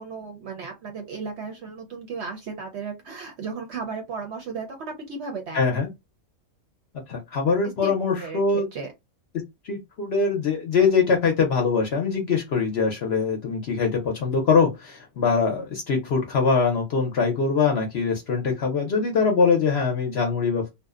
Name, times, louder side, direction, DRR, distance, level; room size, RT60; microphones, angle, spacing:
voice 1, 0.0-5.6 7.8-8.4 8.7-8.9, right 5 dB, 60° right, 0.7 m, -35 dB
voice 2, 5.5-5.9 7.1-8.6 9.6-20.7, left 5 dB, 60° left, 0.7 m, -23 dB
2.6 x 2.0 x 2.3 m
omnidirectional pair, 1.5 m